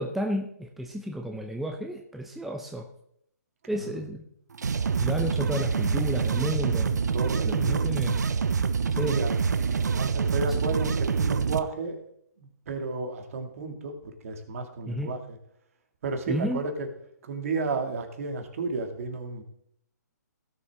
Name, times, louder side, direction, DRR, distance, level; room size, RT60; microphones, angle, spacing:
voice 1, 0.0-2.9 3.7-4.2 5.0-7.0 7.4-8.2 8.9-9.2 10.5-10.6 14.9-15.1 16.3-16.7, equal, ahead, 3 dB, 0.7 m, -32 dB
sound 1, 4.5-11.6, right 5 dB, 70° right, 0.7 m, -26 dB
voice 2, 7.1-7.9 9.0-9.4 9.8-12.0 12.7-15.2 16.0-16.9 17.2-19.4, right 3 dB, 50° right, 5 dB, 2.2 m, -32 dB
17.0 x 7.0 x 3.6 m, 0.73 s
figure-of-eight pair, 135°, 9 cm